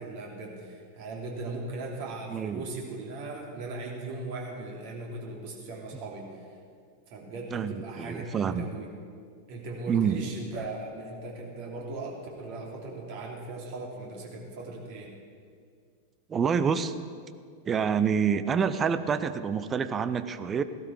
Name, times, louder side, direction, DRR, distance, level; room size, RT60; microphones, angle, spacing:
voice 1, 0.0-6.3 7.1-8.9 9.5-15.1, right 2 dB, 45° right, -1 dB, 3.1 m, -38 dB
voice 2, 2.3-2.7 7.5-8.7 9.9-10.2 16.3-16.9 17.7-20.6, right 7 dB, 20° right, 12 dB, 0.6 m, -27 dB
16.5 x 12.5 x 4.8 m, 2.1 s
figure-of-eight pair, 90°, 0 cm